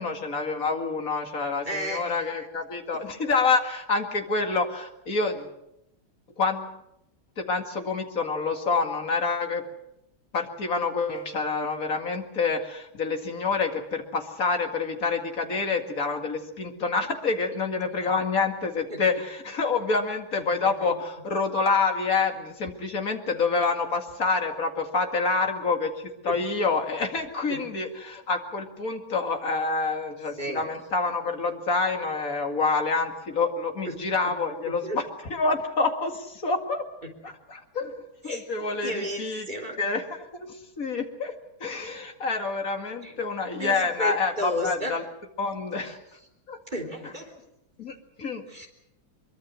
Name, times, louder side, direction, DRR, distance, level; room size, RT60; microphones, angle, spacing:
voice 1, 0.0-5.5 6.4-6.6 7.4-9.6 10.3-36.9 37.2-39.5 39.8-40.1 40.3-41.3 41.6-45.0 45.4-46.0 46.5-46.6 47.8-48.4, left 4 dB, 45° left, 4 dB, 2.5 m, -27 dB
voice 2, 1.6-2.2 17.8-18.1 18.9-19.0 20.3-21.0 26.3-26.4 27.5-27.6 30.4-30.6 33.8-34.4 34.6-35.0 37.0-37.1 38.2-39.8 43.0-43.1 43.6-45.0 45.8-46.0 46.7-47.3 48.5-48.7, equal, 20° right, 3 dB, 3.5 m, -34 dB
23.0 x 23.0 x 6.3 m, 0.83 s
omnidirectional pair, 2.2 m